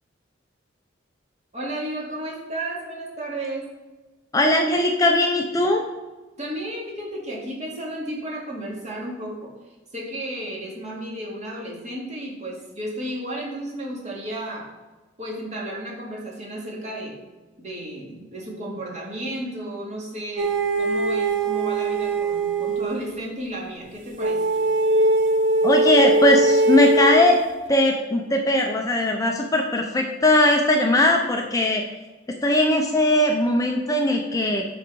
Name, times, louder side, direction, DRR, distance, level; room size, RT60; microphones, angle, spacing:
voice 1, 1.5-3.7 6.4-9.5 9.9-14.7 15.2-17.2 17.6-24.5, right 1 dB, 40° right, -3 dB, 2.2 m, -33 dB
voice 2, 4.3-5.8 25.6-27.4 27.7-31.8 32.4-34.7, left 1 dB, 20° left, 2 dB, 0.6 m, -19 dB
sound 1, 20.4-23.0 24.2-27.5, right 2 dB, 85° right, 0.8 m, -21 dB
11.5 x 4.0 x 4.6 m, 1.2 s
head